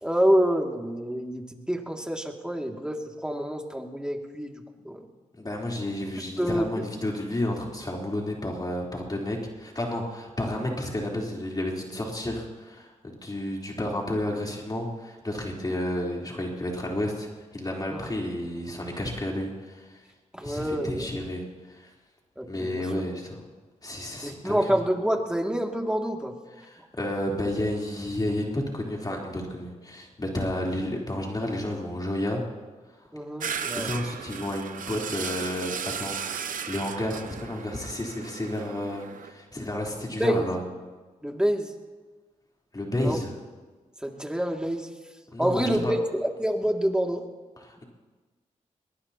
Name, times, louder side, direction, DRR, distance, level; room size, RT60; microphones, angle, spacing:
voice 1, 0.0-5.0 6.4-6.8 17.9-18.0 20.3-21.1 22.4-22.8 24.2-26.3 33.1-33.9 40.2-40.5 41.2-41.7 43.0-43.2 44.0-44.9 45.4-47.3, equal, 5° right, 2 dB, 2.4 m, -27 dB
voice 2, 5.4-20.0 20.4-21.9 22.5-23.4 23.8-24.7 26.6-32.4 33.0-33.1 33.5-36.2 36.7-40.6 42.7-43.4 45.3-45.9 47.6-47.8, left 1 dB, 30° left, -2 dB, 3.7 m, -31 dB
sound 1, 33.4-39.3, right 7 dB, 80° right, 0.9 m, -35 dB
22.5 x 19.0 x 2.9 m, 1.3 s
cardioid pair, 60°, 14 cm